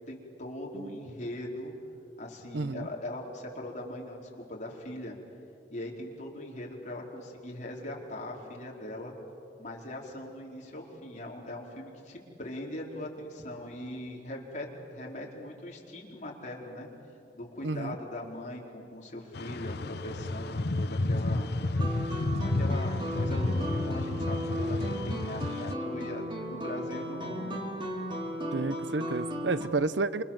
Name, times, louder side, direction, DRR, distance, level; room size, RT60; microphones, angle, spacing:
voice 1, 0.1-1.7 2.2-5.1 5.7-9.1 9.6-16.9 17.3-21.5 22.5-27.6, left 1 dB, 45° left, -1 dB, 4.6 m, -40 dB
voice 2, 2.5-2.9 17.6-18.0 28.5-30.2, right 3 dB, 80° right, 15 dB, 0.8 m, -31 dB
sound 1, 19.3-25.7, left 2 dB, 65° left, 0.8 m, -31 dB
sound 2, 21.8-29.6, equal, 30° right, 3.7 m, -35 dB
28.0 x 28.0 x 7.4 m, 2.8 s
head